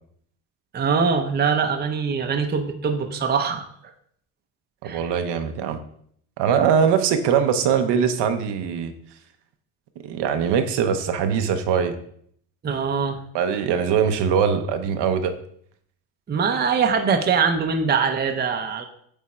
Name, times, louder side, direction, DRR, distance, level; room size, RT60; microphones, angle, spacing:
voice 1, 0.7-3.7 4.8-5.1 12.6-13.2 16.3-18.8, right 5 dB, 25° right, 5 dB, 0.7 m, -22 dB
voice 2, 4.8-5.8 6.4-8.9 10.0-11.9 13.3-15.3, right 7 dB, 70° right, 7 dB, 0.9 m, -22 dB
8.4 x 3.6 x 4.3 m, 0.65 s
cardioid pair, 135°, 42 cm